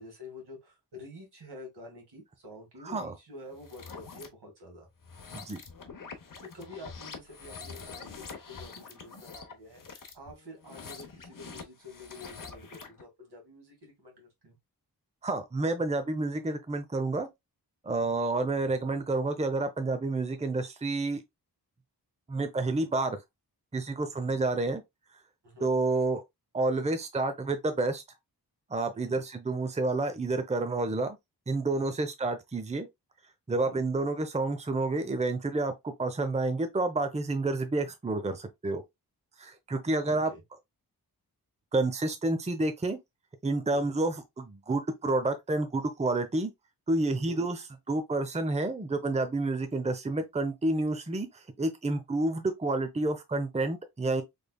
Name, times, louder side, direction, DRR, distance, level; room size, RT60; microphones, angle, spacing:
voice 1, 0.0-4.9 6.5-14.6 17.8-18.1 24.1-24.4 25.4-25.7 28.9-29.2 31.7-32.0 33.5-33.8 40.0-40.4 43.7-43.9 47.1-47.5, left 1 dB, 80° right, 1.9 m, -48 dB
voice 2, 2.8-3.1 5.3-5.6 15.2-17.3 17.8-21.2 22.3-23.2 23.7-24.8 25.6-26.2 26.5-28.0 28.7-31.2 31.5-32.9 33.5-38.8 39.4-40.3 41.7-43.0 43.4-46.5 46.9-54.2, right 2 dB, 15° right, 0.6 m, -29 dB
sound 1, 3.5-4.3 5.0-13.0, left 5 dB, 55° left, 0.9 m, -45 dB
3.5 x 3.3 x 2.3 m
wide cardioid pair, 70°, 39 cm